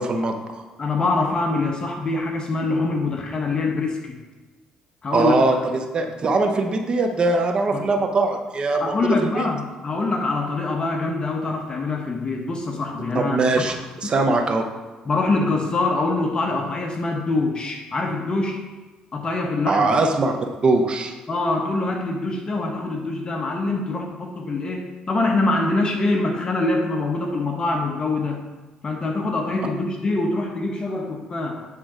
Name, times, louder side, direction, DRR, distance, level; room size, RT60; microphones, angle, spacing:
voice 1, 0.0-0.6 5.1-9.4 13.1-13.7 14.0-14.7 19.7-20.3 20.6-21.1, right 3 dB, 40° right, 5 dB, 0.8 m, -21 dB
voice 2, 0.8-4.2 5.0-5.5 7.7-7.9 8.8-13.8 15.0-18.6 19.1-19.9 21.3-28.4 28.8-31.7, left 2 dB, 35° left, 3 dB, 0.9 m, -24 dB
8.2 x 3.7 x 5.0 m, 1.2 s
cardioid pair, 85°, 2 cm